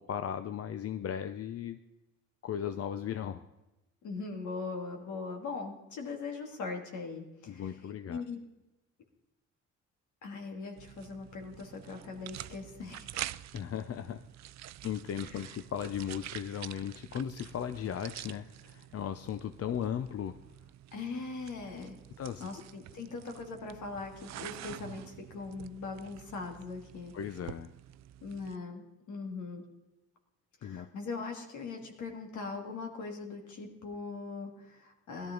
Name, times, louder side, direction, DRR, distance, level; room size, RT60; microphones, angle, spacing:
voice 1, 0.0-1.8 2.4-3.4 7.5-8.2 13.5-14.2 14.8-20.4 22.2-22.5 27.1-27.7 30.6-30.9, left 9 dB, 50° left, 10 dB, 0.7 m, -36 dB
voice 2, 4.0-7.8 8.1-8.4 10.2-13.4 15.2-15.6 20.9-22.0 22.4-27.1 28.2-29.6 30.6-35.3, left 4 dB, 75° left, 3 dB, 2.7 m, -40 dB
sound 1, 10.8-28.6, right 13 dB, 65° right, 0.5 m, -47 dB
17.0 x 12.5 x 3.9 m, 0.99 s
cardioid pair, 90°, 30 cm